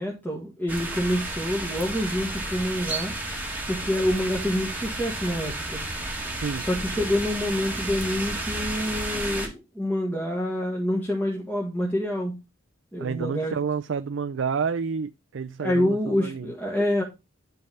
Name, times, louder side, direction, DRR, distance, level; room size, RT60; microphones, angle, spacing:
voice 1, 0.0-3.1 3.7-5.8 6.6-12.4 12.9-13.5 15.6-17.0, left 1 dB, 10° left, 1.5 m, -27 dB
sound 1, 0.7-9.5, right 2 dB, 10° right, 1.7 m, -32 dB
voice 2, 6.3-6.7 13.0-16.5, right 5 dB, 65° right, 0.4 m, -29 dB
10.5 x 3.5 x 5.4 m
head